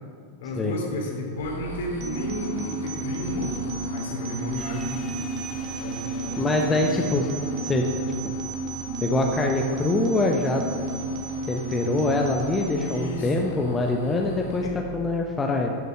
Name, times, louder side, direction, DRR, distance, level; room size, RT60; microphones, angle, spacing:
voice 1, 0.4-3.6 3.9-5.3 5.8-6.8 11.7-11.8 12.7-13.4 14.6-14.8, left 1 dB, 55° left, 0 dB, 3.0 m, -33 dB
sound 1, 1.4-14.6, right 1 dB, 70° left, 2.5 m, -41 dB
sound 2, 2.0-13.0, right 3 dB, 35° right, 1.9 m, -32 dB
sound 3, 4.6-8.9, right 1 dB, 15° right, 2.3 m, -46 dB
voice 2, 6.4-7.3 7.6-7.9 8.2-8.4 9.0-10.6 11.5-14.7 14.9-15.7, left 2 dB, 15° left, 1 dB, 0.9 m, -24 dB
11.5 x 6.8 x 7.6 m, 2.2 s
figure-of-eight pair, 90°, 0 cm